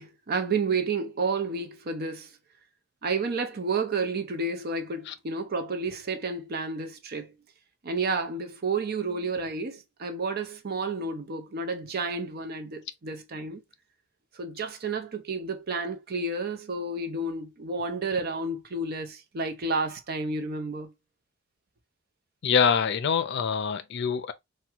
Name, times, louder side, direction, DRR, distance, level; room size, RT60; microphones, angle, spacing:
voice 1, 0.0-2.3 3.0-7.3 7.8-13.6 14.3-20.9, right 3 dB, 50° right, 0.6 m, -31 dB
voice 2, 22.4-24.3, left 6 dB, 60° left, 0.5 m, -25 dB
3.4 x 2.2 x 2.8 m
head